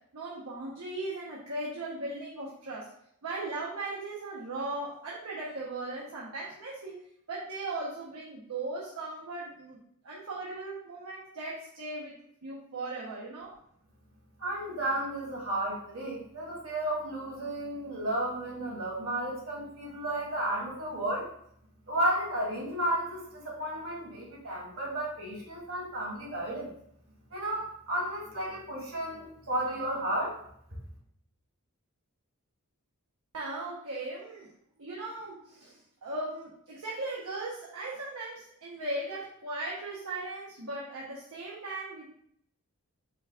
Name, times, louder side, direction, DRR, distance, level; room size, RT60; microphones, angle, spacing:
voice 1, 0.1-2.9 3.2-7.0 7.3-9.8 10.0-13.5 33.3-34.5 34.8-42.1, right 2 dB, 80° right, -6 dB, 0.9 m, -38 dB
voice 2, 14.4-21.3 21.9-26.7 27.3-30.4, right 1 dB, 65° right, -3 dB, 1.6 m, -33 dB
5.0 x 2.4 x 3.6 m, 0.68 s
head